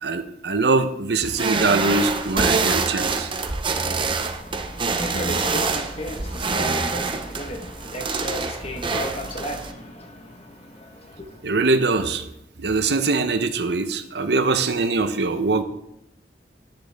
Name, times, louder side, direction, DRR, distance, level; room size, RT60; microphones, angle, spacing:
voice 1, 0.0-3.3 11.4-12.3 12.6-15.6, right 3 dB, 70° right, 9 dB, 0.8 m, -22 dB
sound 1, 1.2-9.7, right 4 dB, 30° right, 0.7 m, -26 dB
voice 2, 4.4-11.4, equal, 35° left, 4 dB, 1.3 m, -34 dB
10.5 x 9.7 x 3.5 m, 0.82 s
head